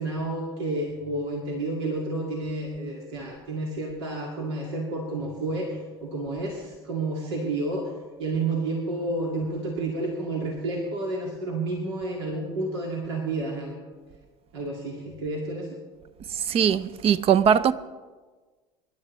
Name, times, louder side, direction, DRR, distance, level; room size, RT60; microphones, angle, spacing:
voice 1, 0.0-7.9 8.2-13.8 14.5-15.7, right 2 dB, 80° right, 2.3 m, -30 dB
voice 2, 16.3-17.7, right 8 dB, 45° right, 0.8 m, -21 dB
26.0 x 11.5 x 3.2 m
hypercardioid pair, 70°, 14 cm